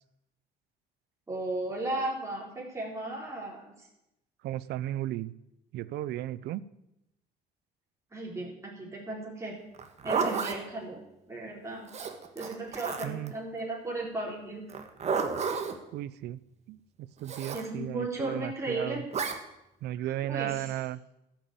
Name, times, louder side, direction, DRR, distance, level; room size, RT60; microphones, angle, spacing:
voice 1, 1.3-3.9 8.1-9.6 10.0-11.0 11.3-11.9 12.3-14.6 17.5-19.0 19.9-20.8, right 2 dB, 15° right, -3 dB, 4.0 m, -35 dB
voice 2, 4.4-5.3 5.7-6.6 13.0-13.3 15.9-16.4 16.7-19.0 19.8-21.0, right 14 dB, 80° right, 18 dB, 0.6 m, -35 dB
Zipper (clothing), 9.7-10.6 11.9-13.3 14.7-15.8 17.2-17.6 19.1-19.4, right 5 dB, 40° right, 1.6 m, -31 dB
13.0 x 7.5 x 8.8 m, 0.88 s
cardioid pair, 110°, 17 cm